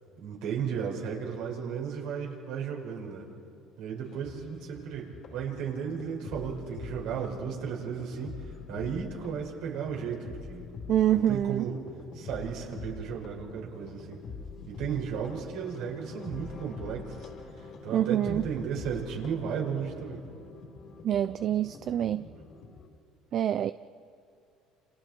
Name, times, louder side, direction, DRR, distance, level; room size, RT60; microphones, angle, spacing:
voice 1, 0.2-3.3 3.8-10.7 11.1-11.8 12.1-14.2 14.7-17.3 17.6-20.2, right 7 dB, 75° right, -1 dB, 5.5 m, -35 dB
sound 1, 4.0-22.9, left 4 dB, 50° left, 3.3 m, -45 dB
voice 2, 10.9-11.7 17.9-18.4 21.0-22.3 23.3-23.7, right 11 dB, 50° right, 12 dB, 0.5 m, -26 dB
29.5 x 28.5 x 4.6 m, 2.5 s
cardioid pair, 120°, 0 cm